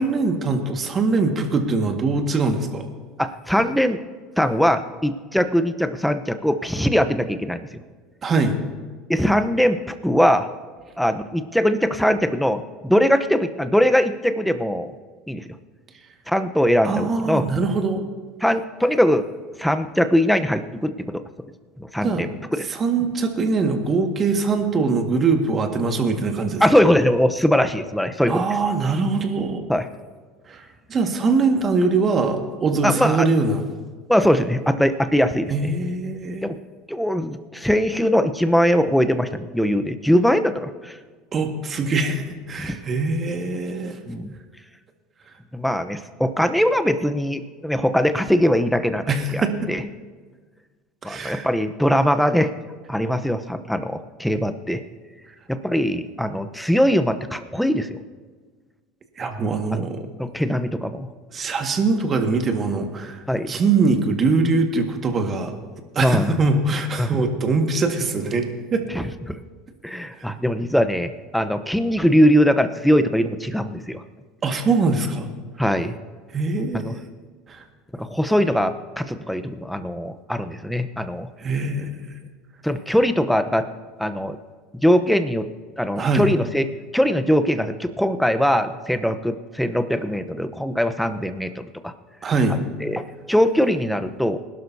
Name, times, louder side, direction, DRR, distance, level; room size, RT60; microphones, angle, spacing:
voice 1, 0.0-2.9 8.2-8.6 16.8-18.0 22.0-22.3 22.7-26.6 28.3-29.6 30.5-30.6 30.9-33.6 35.5-36.5 41.3-44.0 49.1-49.7 51.0-51.5 59.2-60.1 61.3-65.5 66.0-68.9 70.2-70.3 74.4-75.3 76.3-76.9 77.5-77.6 81.4-82.0 86.0-86.3 92.2-92.6, right 3 dB, 35° right, 4 dB, 1.8 m, -22 dB
voice 2, 3.2-4.0 4.4-7.6 9.1-9.8 10.0-10.5 11.0-14.9 15.3-15.4 16.3-17.4 18.4-19.3 19.6-21.2 21.8-22.7 26.6-28.4 29.7-29.9 32.8-33.3 34.1-35.5 36.4-36.6 36.9-41.0 42.6-42.8 44.1-44.3 45.5-49.8 51.0-52.5 52.9-54.8 55.5-58.0 59.7-59.9 60.2-61.1 63.3-63.5 66.0-66.3 67.0-67.1 68.9-69.4 69.8-74.0 75.6-75.9 76.7-76.9 77.9-81.3 82.6-83.7 84.0-84.4 84.8-85.5 85.8-86.7 86.9-91.9 92.5-94.4, equal, ahead, 9 dB, 0.9 m, -21 dB
20.5 x 12.0 x 2.8 m, 1.5 s
hypercardioid pair, 90°, 0 cm